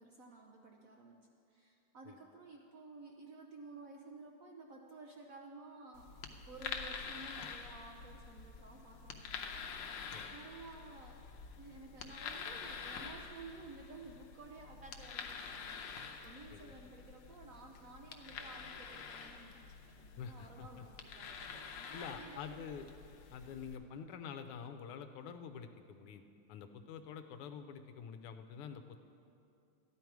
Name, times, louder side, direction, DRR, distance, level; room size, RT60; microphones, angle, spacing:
voice 1, 0.0-9.8 10.3-11.2 11.5-22.7, right 3 dB, 75° right, 1 dB, 0.7 m, -54 dB
sound 1, 5.9-23.8, left 6 dB, 65° left, 1.4 m, -47 dB
voice 2, 20.2-20.8 21.9-22.9 23.3-29.0, left 7 dB, 85° left, 8 dB, 1.6 m, -47 dB
13.0 x 11.0 x 4.6 m, 2.6 s
omnidirectional pair, 2.4 m